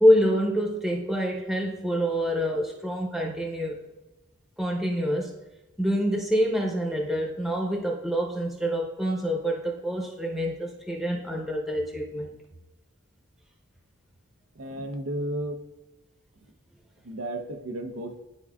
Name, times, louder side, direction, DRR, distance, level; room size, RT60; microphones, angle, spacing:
voice 1, 0.0-3.8 4.6-5.3 5.8-12.3, equal, ahead, -1 dB, 0.9 m, -26 dB
voice 2, 14.6-15.6 17.0-18.2, right 1 dB, 85° right, 5 dB, 0.8 m, -33 dB
11.0 x 4.6 x 2.3 m, 1.1 s
head